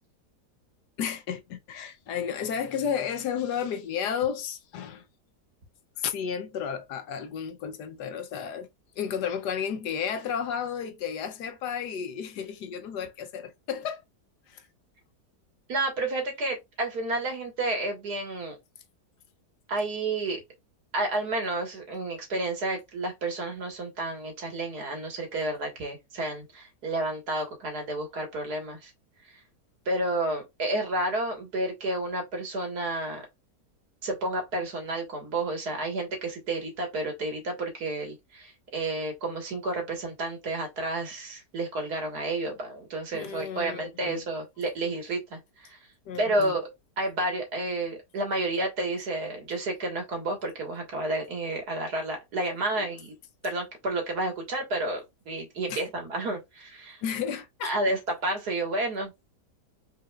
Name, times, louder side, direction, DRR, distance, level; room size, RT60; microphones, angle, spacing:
voice 1, 1.0-5.0 6.0-8.7 9.0-14.0 14.5-14.6 43.1-44.2 46.1-46.6 52.8-52.9 55.7-55.8 57.0-57.8, left 7 dB, 80° left, 1.4 m, -32 dB
voice 2, 15.7-18.6 19.7-20.4 20.9-28.9 29.9-33.2 34.0-45.8 46.2-46.7 47.0-53.1 53.4-55.0 55.3-57.0 57.6-59.3, right 2 dB, 70° right, 2.2 m, -31 dB
5.4 x 3.9 x 2.4 m
omnidirectional pair, 1.8 m